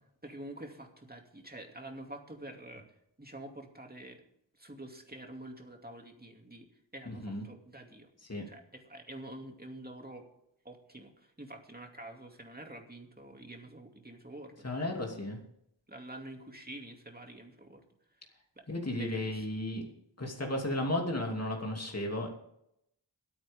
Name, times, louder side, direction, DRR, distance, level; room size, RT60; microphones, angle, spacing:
voice 1, 0.2-2.8 3.2-4.2 4.6-6.7 6.9-8.1 8.4-10.3 10.6-14.7 15.9-17.8 18.6-18.7 18.9-19.5, right 1 dB, 20° right, 3 dB, 2.6 m, -47 dB
voice 2, 7.1-7.4 8.2-8.4 14.6-15.4 18.7-19.9 20.2-22.3, left 1 dB, 35° left, 1 dB, 2.8 m, -34 dB
23.0 x 9.3 x 3.7 m, 0.77 s
wide cardioid pair, 60°, 45 cm